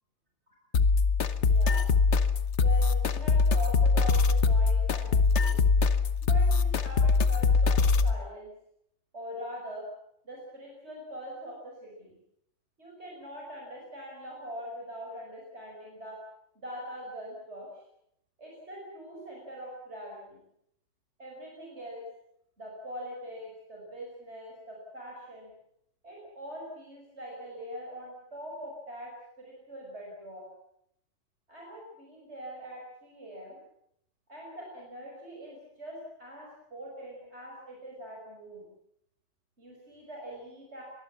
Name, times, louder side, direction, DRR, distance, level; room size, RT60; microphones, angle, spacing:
sound 1, 0.7-8.1, left 4 dB, 70° left, 1.4 m, -23 dB
voice 1, 1.4-1.9 2.6-5.6 6.2-8.5 9.1-9.9 10.2-12.2 12.8-16.2 16.5-17.7 18.4-20.4 21.2-22.0 22.6-25.5 26.0-29.1 29.4-30.4 31.5-33.6 34.3-38.7 39.6-40.8, equal, 65° right, -2 dB, 6.4 m, -42 dB
24.0 x 20.0 x 7.3 m, 0.75 s
omnidirectional pair, 1.2 m